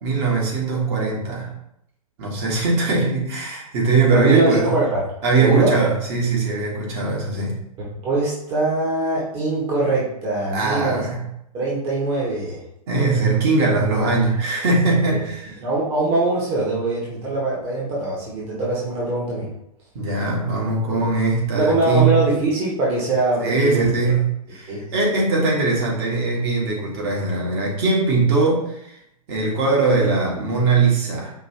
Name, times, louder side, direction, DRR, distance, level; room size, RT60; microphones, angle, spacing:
voice 1, 0.0-1.5 2.2-4.7 5.2-7.6 10.5-11.2 12.9-15.6 19.9-22.2 23.4-29.0 29.3-31.3, right 3 dB, 45° right, -3 dB, 1.5 m, -21 dB
voice 2, 4.1-4.9 5.4-5.7 8.0-11.0 11.5-12.6 15.1-15.2 15.6-19.5 21.5-24.2 24.7-24.8, right 2 dB, 30° right, -6 dB, 1.2 m, -22 dB
5.4 x 2.6 x 2.9 m, 0.78 s
figure-of-eight pair, 110°, 19 cm